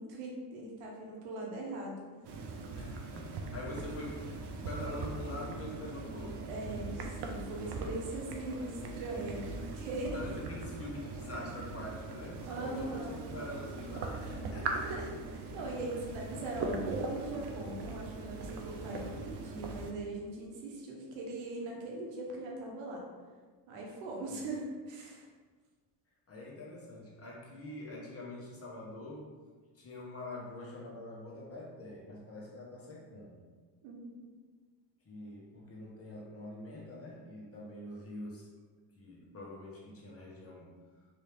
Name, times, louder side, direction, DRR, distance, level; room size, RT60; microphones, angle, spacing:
voice 1, 0.0-2.1 6.5-10.4 12.4-13.3 14.8-23.0 23.7-25.2 33.8-34.3, right 2 dB, 80° right, -2 dB, 1.0 m, -40 dB
sound 1, 2.2-19.9, right 3 dB, 60° right, 0.6 m, -40 dB
voice 2, 2.8-4.3 4.5-6.5 10.1-15.0 24.3-24.4 26.3-29.3 29.7-33.5 35.0-38.5 38.9-40.8, left 1 dB, 30° left, -3 dB, 1.1 m, -45 dB
3.2 x 2.8 x 3.3 m, 1.4 s
supercardioid pair, 85°, 45 cm